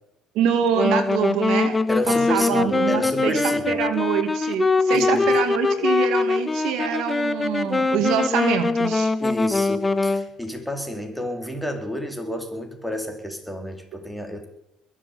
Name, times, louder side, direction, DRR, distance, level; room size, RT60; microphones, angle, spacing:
voice 1, 0.3-1.8 2.1-9.1, right 8 dB, 75° right, 8 dB, 2.1 m, -25 dB
Wind instrument woodwind instrument, 0.7-10.3, left 3 dB, 20° left, 1.1 m, -22 dB
voice 2, 1.9-3.8 4.9-5.4 9.2-14.5, left 1 dB, ahead, 4 dB, 4.0 m, -30 dB
21.5 x 7.6 x 8.2 m, 0.86 s
supercardioid pair, 85°, 0 cm